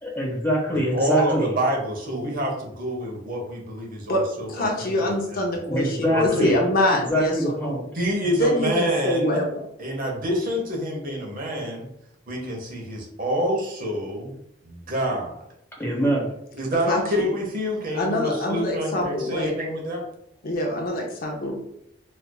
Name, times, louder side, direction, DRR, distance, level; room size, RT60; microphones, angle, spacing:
voice 1, 0.0-1.5 5.7-6.7 7.1-7.8 15.8-16.3, equal, 10° left, -4 dB, 1.2 m, -24 dB
voice 2, 0.7-5.4 6.1-6.5 7.9-9.4 9.8-11.9 12.3-14.3 14.6-15.4 16.6-20.0, equal, 50° right, 0 dB, 0.8 m, -27 dB
voice 3, 4.5-7.8 8.2-9.6 16.9-17.3 17.9-19.5 20.4-21.5, left 1 dB, 50° left, 0 dB, 0.6 m, -25 dB
4.3 x 2.4 x 2.2 m, 0.77 s
head